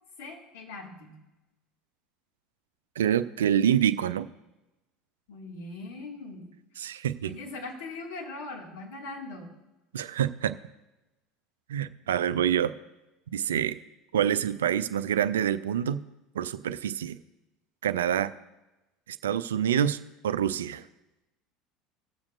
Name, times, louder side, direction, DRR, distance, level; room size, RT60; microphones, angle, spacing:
voice 1, 0.2-1.2 5.3-6.5 7.2-9.5, left 3 dB, 70° left, -1 dB, 1.9 m, -40 dB
voice 2, 3.0-4.3 6.8-7.3 9.9-10.6 11.7-12.7 13.3-13.8 14.1-16.0 16.3-17.2 17.8-18.3 19.1-20.0 20.2-20.8, right 9 dB, 80° right, 13 dB, 0.4 m, -26 dB
18.5 x 7.2 x 2.5 m, 1.0 s
hypercardioid pair, 75°, 0 cm